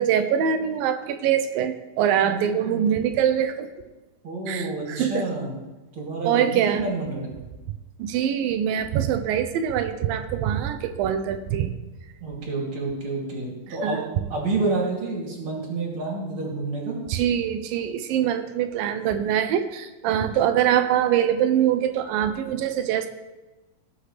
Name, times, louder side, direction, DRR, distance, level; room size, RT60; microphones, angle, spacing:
voice 1, 0.0-3.7 4.5-5.3 6.2-6.8 8.0-11.7 13.8-14.3 17.1-23.1, right 9 dB, 80° right, 9 dB, 2.3 m, -23 dB
voice 2, 2.2-2.9 4.2-5.5 5.9-7.3 12.2-14.0 14.3-17.0, right 3 dB, 40° right, -3 dB, 3.3 m, -29 dB
18.0 x 8.1 x 3.3 m, 1.1 s
omnidirectional pair, 4.2 m